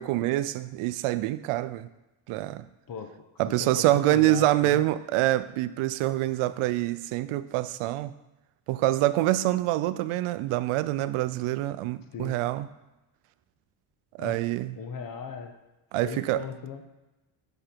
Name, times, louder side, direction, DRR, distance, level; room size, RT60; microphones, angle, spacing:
voice 1, 0.0-1.9 2.3-2.6 3.4-8.1 8.7-12.7 14.2-14.8 15.9-16.4, right 15 dB, 85° right, 14 dB, 0.6 m, -26 dB
voice 2, 3.5-4.8 12.1-12.4 14.2-14.4 14.7-15.5 16.0-16.8, left 5 dB, 45° left, 5 dB, 1.0 m, -38 dB
6.8 x 5.4 x 4.4 m, 1.0 s
cardioid pair, 90°, 49 cm